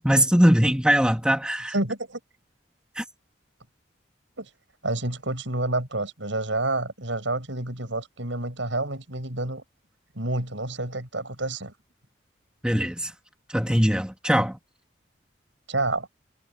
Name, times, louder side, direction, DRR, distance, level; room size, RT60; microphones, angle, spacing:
voice 1, 0.0-1.7 3.0-3.1 12.6-13.1 13.5-14.6, equal, 5° right, 2.1 m, -21 dB
voice 2, 1.7-2.2 4.4-4.5 4.8-9.6 10.1-11.7 15.7-16.1, right 2 dB, 80° right, 6.3 m, -29 dB
head